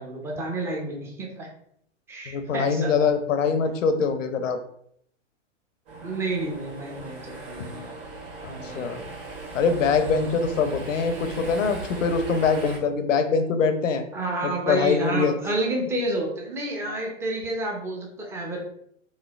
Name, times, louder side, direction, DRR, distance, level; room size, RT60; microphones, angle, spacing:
voice 1, 0.0-1.5 2.1-3.1 6.0-8.0 8.5-9.2 14.1-18.6, right 2 dB, 5° right, -1 dB, 0.4 m, -30 dB
voice 2, 2.3-4.6 8.4-9.0 9.5-14.0 14.4-15.3, left 5 dB, 75° left, 8 dB, 0.6 m, -23 dB
sound 1, 5.9-12.8, right 2 dB, 40° right, 1.3 m, -38 dB
3.7 x 3.1 x 2.3 m, 0.70 s
hypercardioid pair, 110°, 38 cm